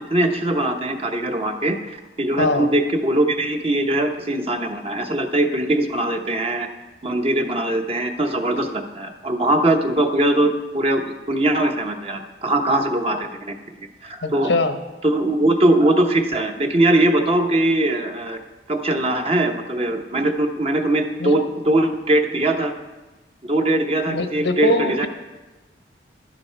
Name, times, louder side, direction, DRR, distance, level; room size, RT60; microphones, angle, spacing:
voice 1, 0.1-1.8 2.2-6.7 7.0-13.5 14.0-14.5 15.0-18.4 18.7-22.7 23.4-25.1, right 1 dB, 35° right, 4 dB, 1.0 m, -21 dB
voice 2, 2.4-2.7 14.2-14.7 21.2-21.3 24.1-25.1, left 2 dB, 90° left, 7 dB, 1.0 m, -22 dB
11.5 x 10.5 x 4.6 m, 1.2 s
head